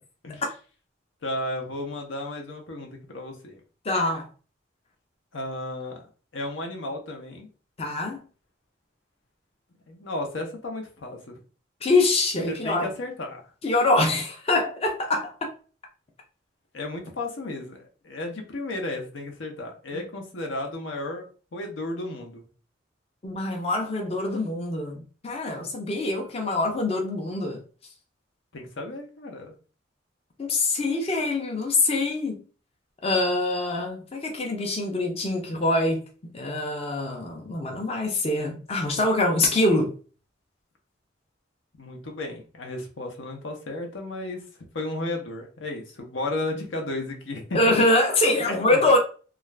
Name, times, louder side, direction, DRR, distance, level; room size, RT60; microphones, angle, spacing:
voice 1, 1.2-3.6 5.3-7.5 9.9-11.4 12.5-13.4 16.7-21.3 21.5-22.5 28.5-29.5 41.8-44.4 44.7-47.6 48.4-48.8, left 2 dB, 80° left, 0.7 m, -34 dB
voice 2, 3.8-4.3 7.8-8.2 11.8-12.9 13.6-15.5 19.9-20.0 23.2-27.6 30.4-32.4 33.0-36.0 36.3-39.9 47.5-49.0, left 2 dB, 30° left, 0.5 m, -24 dB
2.4 x 2.3 x 3.2 m
head